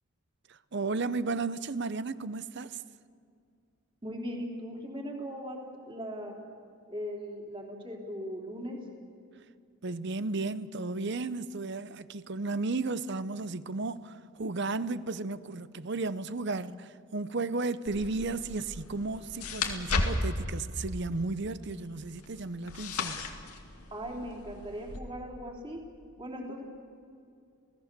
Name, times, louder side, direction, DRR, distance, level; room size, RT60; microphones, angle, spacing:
voice 1, 0.7-2.8 9.8-23.2, right 3 dB, 50° right, 0.7 m, -34 dB
voice 2, 4.0-6.4 6.9-8.8 23.9-25.8 26.2-26.6, equal, 25° right, 3.2 m, -39 dB
sound 1, 17.9-25.0, left 2 dB, 90° left, 2.2 m, -36 dB
28.5 x 18.0 x 6.7 m
head